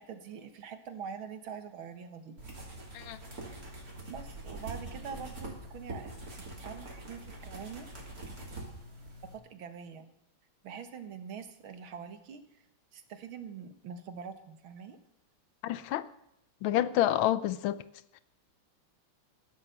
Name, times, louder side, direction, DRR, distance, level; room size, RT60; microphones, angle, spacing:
voice 1, 0.0-2.3 4.1-7.9 9.3-10.1 10.6-12.7 12.9-15.0, right 6 dB, 80° right, 9 dB, 2.1 m, -44 dB
sound 1, 2.4-9.3, right 2 dB, 45° right, 3.6 m, -44 dB
voice 2, 15.6-16.1 16.6-17.8, left 12 dB, 80° left, 16 dB, 1.5 m, -28 dB
15.0 x 12.0 x 6.9 m, 0.81 s
omnidirectional pair, 2.2 m